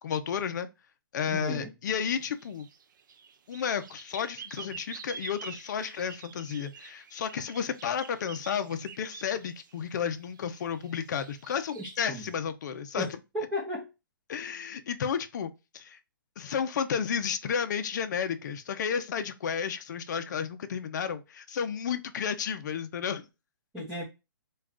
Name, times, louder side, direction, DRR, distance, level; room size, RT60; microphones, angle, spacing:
voice 1, 0.0-0.7 1.1-2.7 3.5-13.1 14.3-16.0 16.4-23.3, left 7 dB, 55° left, 0.5 m, -32 dB
voice 2, 1.3-1.7 11.7-12.3 12.9-13.9 23.7-24.0, equal, 5° right, 0.7 m, -35 dB
sound 1, 1.9-12.4, right 6 dB, 60° right, 0.4 m, -48 dB
2.3 x 2.3 x 3.5 m
hypercardioid pair, 155°, 12 cm